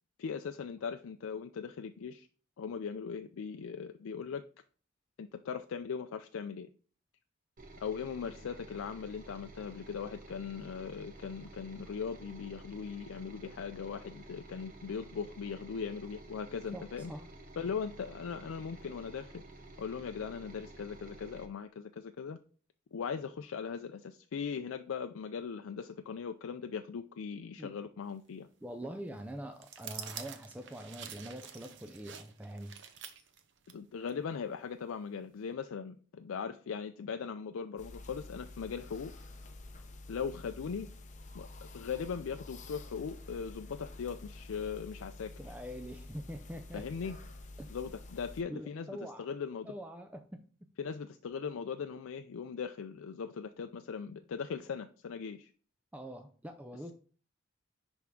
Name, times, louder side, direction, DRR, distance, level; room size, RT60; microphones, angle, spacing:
voice 1, 0.2-2.3 2.6-4.4 5.2-6.7 7.8-17.1 17.6-19.4 19.8-22.4 22.9-28.5 33.7-39.1 40.1-40.9 41.3-41.5 41.7-45.3 46.7-47.2 47.7-48.9 49.2-49.7 50.8-55.5, left 6 dB, 90° left, 0.4 m, -39 dB
sound 1, 7.6-21.5, right 2 dB, 40° right, 1.0 m, -52 dB
voice 2, 16.7-17.3 27.6-27.7 28.6-32.7 45.4-46.9 47.6-47.7 48.5-49.3 49.6-50.4 55.9-56.9, equal, 5° right, 0.4 m, -44 dB
sound 2, 29.6-33.7 34.1-34.2, right 8 dB, 60° right, 0.8 m, -47 dB
sound 3, 37.8-48.4, left 2 dB, 35° left, 0.8 m, -49 dB
10.5 x 3.5 x 3.7 m
head